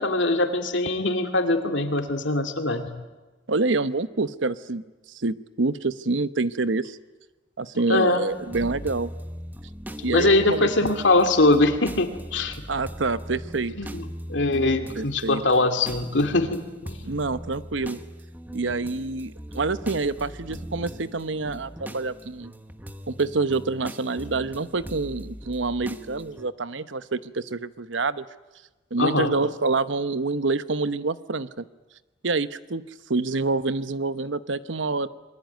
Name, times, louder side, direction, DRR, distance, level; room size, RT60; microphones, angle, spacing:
voice 1, 0.0-2.9 7.9-8.2 10.0-12.6 13.8-17.0 29.0-29.3, left 2 dB, 75° left, 6 dB, 2.5 m, -22 dB
voice 2, 3.5-4.8 5.1-7.0 7.6-9.1 10.0-10.9 12.7-13.7 15.0-15.4 17.0-18.0 18.5-22.5 23.1-28.3 28.9-31.6 32.2-32.8 33.1-35.1, right 3 dB, 80° right, 13 dB, 1.0 m, -27 dB
sound 1, 8.3-26.5, equal, 10° right, 1.2 m, -40 dB
26.5 x 22.0 x 9.4 m, 1.2 s
head